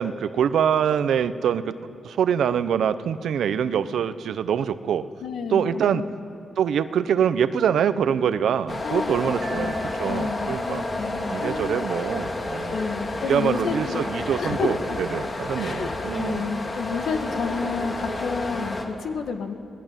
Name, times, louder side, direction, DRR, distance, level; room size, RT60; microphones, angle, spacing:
voice 1, 0.0-1.8 2.0-5.0 5.5-6.0 6.6-10.8 11.3-12.8 13.3-16.5, right 8 dB, 85° right, 12 dB, 0.9 m, -24 dB
voice 2, 5.2-6.1 8.8-9.1 9.5-9.7 10.1-11.8 12.7-14.0 14.4-15.0 15.6-19.5, left 5 dB, 80° left, 6 dB, 2.1 m, -30 dB
sound 1, 8.7-18.8, left 2 dB, 35° left, 3.0 m, -30 dB
Piano, 9.4-10.7, right 4 dB, 45° right, 2.4 m, -43 dB
28.0 x 19.0 x 9.2 m, 2.7 s
wide cardioid pair, 120°, 0 cm